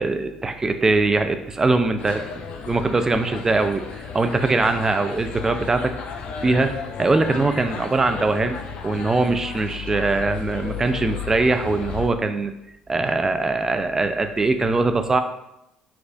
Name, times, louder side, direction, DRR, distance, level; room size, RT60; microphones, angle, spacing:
voice 1, 0.0-5.9 6.4-8.6 8.8-12.5 12.9-15.2, right 3 dB, 25° right, 8 dB, 0.3 m, -22 dB
sound 1, 2.0-12.1, left 6 dB, 60° left, 0.4 m, -34 dB
4.8 x 2.3 x 2.6 m, 0.83 s
hypercardioid pair, 60°, 2 cm